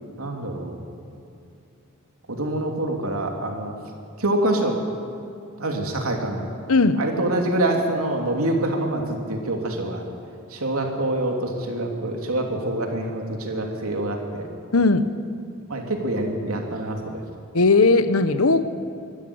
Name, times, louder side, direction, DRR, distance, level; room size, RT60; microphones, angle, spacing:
voice 1, 0.2-0.8 2.3-3.7 4.2-4.8 5.6-6.4 7.0-10.0 10.5-14.5 15.7-17.2, right 1 dB, 85° right, 2 dB, 3.0 m, -25 dB
voice 2, 14.7-15.1 17.5-18.6, left 3 dB, 85° left, 12 dB, 1.0 m, -17 dB
24.0 x 13.0 x 8.7 m, 2.5 s
head